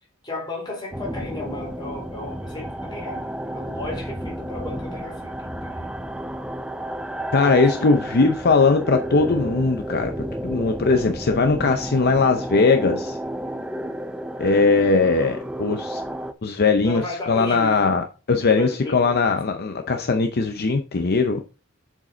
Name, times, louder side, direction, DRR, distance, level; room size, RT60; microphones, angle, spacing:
voice 1, 0.2-5.9 7.4-7.9 14.4-14.8 16.8-17.9 18.4-19.2, left 2 dB, 20° left, 3.7 m, -35 dB
sound 1, 0.9-16.3, right 1 dB, 5° right, 0.4 m, -32 dB
voice 2, 7.3-10.1 10.4-13.2 14.4-16.0 16.4-17.0 17.3-21.4, left 4 dB, 50° left, 0.6 m, -20 dB
7.6 x 5.0 x 3.8 m
head